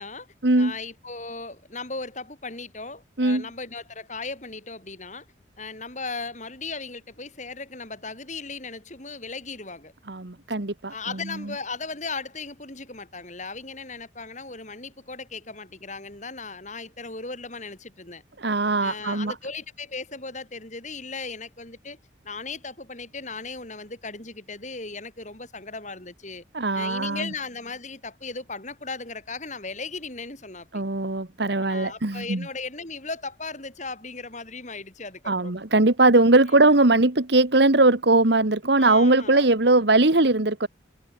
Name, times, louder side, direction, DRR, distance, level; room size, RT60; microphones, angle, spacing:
voice 1, 0.5-5.3 5.6-9.9 10.9-18.2 18.8-22.0 22.2-26.4 26.7-30.8 31.7-35.5 36.5-36.7 38.8-39.5, left 4 dB, 40° left, 6.3 m, -37 dB
voice 2, 10.1-10.9 18.4-19.3 26.5-27.3 30.7-32.5 35.3-40.7, right 2 dB, 60° right, 1.5 m, -20 dB
head